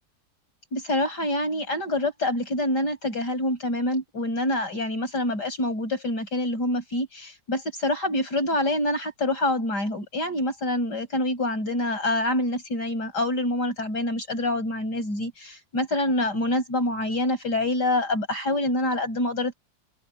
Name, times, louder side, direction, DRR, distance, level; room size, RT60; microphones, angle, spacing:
voice 1, 0.7-19.5, left 1 dB, 80° left, 8.8 m, -26 dB
omnidirectional pair, 1.8 m